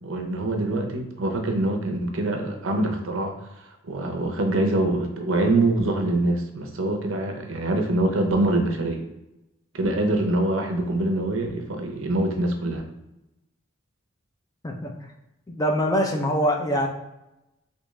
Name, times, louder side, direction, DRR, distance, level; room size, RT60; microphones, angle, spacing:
voice 1, 0.0-9.0 9.7-12.8, right 2 dB, 75° right, 3 dB, 0.7 m, -24 dB
voice 2, 15.5-16.9, equal, 15° left, 1 dB, 0.4 m, -23 dB
3.6 x 2.9 x 3.1 m, 0.93 s
head